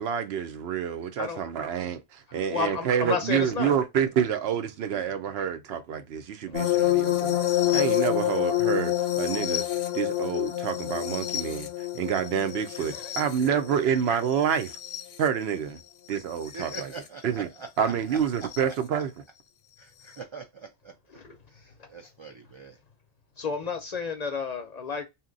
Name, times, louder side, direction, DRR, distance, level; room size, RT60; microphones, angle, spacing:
voice 1, 0.0-7.4 7.7-9.6 9.9-11.7 11.9-14.8 15.2-15.8 16.1-16.9 17.2-17.5 17.8-19.1, right 8 dB, 85° right, 0.8 m, -28 dB
voice 2, 2.3-3.7 6.5-6.8 12.8-13.2 21.1-21.4 21.8-21.9 23.4-25.0, left 5 dB, 50° left, 0.5 m, -32 dB
sound 1, 6.5-15.2 16.5-16.8 18.5-18.6, left 14 dB, 85° left, 0.8 m, -27 dB
voice 3, 16.5-17.7 19.8-20.9 21.5-22.8, right 4 dB, 50° right, 0.3 m, -43 dB
2.8 x 2.2 x 3.7 m
omnidirectional pair, 1.0 m